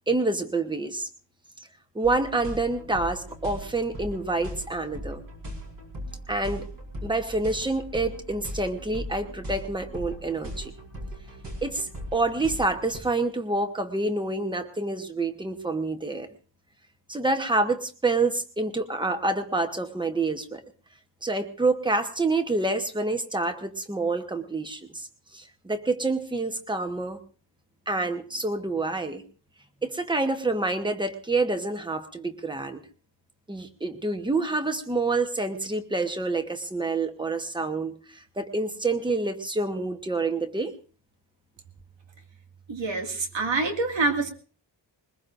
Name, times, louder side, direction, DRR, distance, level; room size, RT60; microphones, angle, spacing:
voice 1, 0.1-1.1 1.9-5.2 6.3-6.7 7.0-10.7 11.6-16.3 17.1-20.6 21.2-25.1 25.3-27.2 27.9-29.2 29.8-32.8 33.5-40.7, right 3 dB, 10° right, 6 dB, 1.1 m, -27 dB
sound 1, 2.0-13.0, equal, 50° right, 5.1 m, -39 dB
voice 2, 42.7-44.3, right 3 dB, 75° right, 4 dB, 2.2 m, -26 dB
21.5 x 20.5 x 2.6 m, 0.38 s
wide cardioid pair, 180°, 45 cm